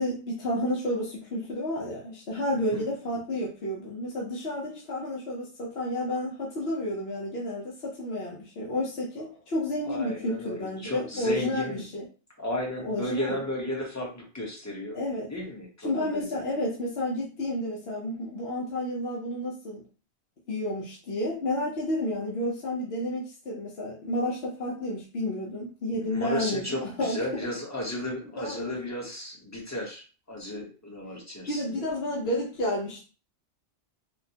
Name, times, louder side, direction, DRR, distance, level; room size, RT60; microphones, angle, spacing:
voice 1, 0.0-12.0 12.8-13.4 14.9-15.3 15.8-19.8 20.5-27.2 28.4-28.8 31.5-33.0, left 1 dB, 65° left, -3 dB, 1.0 m, -31 dB
voice 2, 9.8-11.8 12.4-15.0 15.3-16.4 26.0-31.9, left 1 dB, 15° left, -1 dB, 0.8 m, -34 dB
4.2 x 2.1 x 2.8 m, 0.36 s
omnidirectional pair, 1.2 m